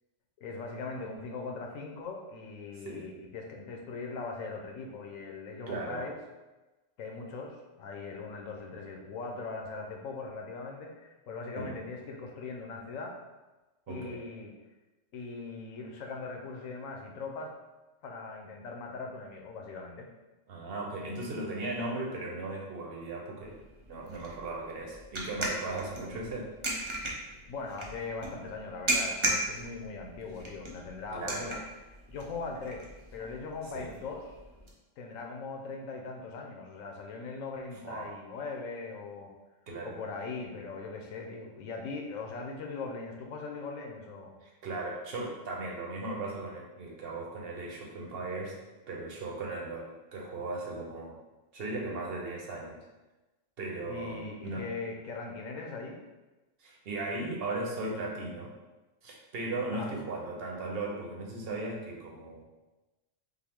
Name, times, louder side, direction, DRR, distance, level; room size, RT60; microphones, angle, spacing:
voice 1, 0.4-6.2 7.0-13.2 13.9-14.5 15.1-17.5 18.0-20.1 26.1-26.2 27.5-31.6 32.1-32.9 33.1-34.3 35.0-39.3 39.8-44.4 53.9-56.0 59.7-59.9, left 4 dB, 85° left, 1 dB, 1.1 m, -40 dB
voice 2, 5.7-6.1 11.6-11.8 13.9-14.2 20.5-23.6 23.9-26.5 31.1-31.5 33.7-33.9 37.8-38.1 39.7-40.0 44.4-48.5 48.9-51.1 51.5-52.8 53.6-54.7 56.6-58.5 59.0-62.4, right 2 dB, 55° right, -1 dB, 1.0 m, -37 dB
sound 1, 23.4-34.7, right 2 dB, 35° right, 0.5 m, -37 dB
5.8 x 2.0 x 3.6 m, 1.1 s
omnidirectional pair, 1.3 m